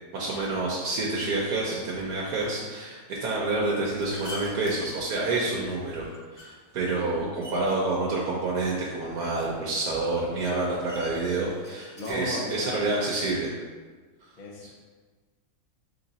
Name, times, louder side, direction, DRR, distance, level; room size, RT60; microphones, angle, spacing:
voice 1, 0.1-6.0 6.3-13.5, right 2 dB, 80° right, -4 dB, 1.2 m, -28 dB
sound 1, 2.4-12.1, left 1 dB, 20° left, 1.2 m, -49 dB
voice 2, 6.9-7.3 11.9-12.9 14.4-14.7, left 2 dB, 40° left, -2 dB, 0.7 m, -36 dB
3.8 x 3.3 x 4.0 m, 1.4 s
omnidirectional pair, 1.6 m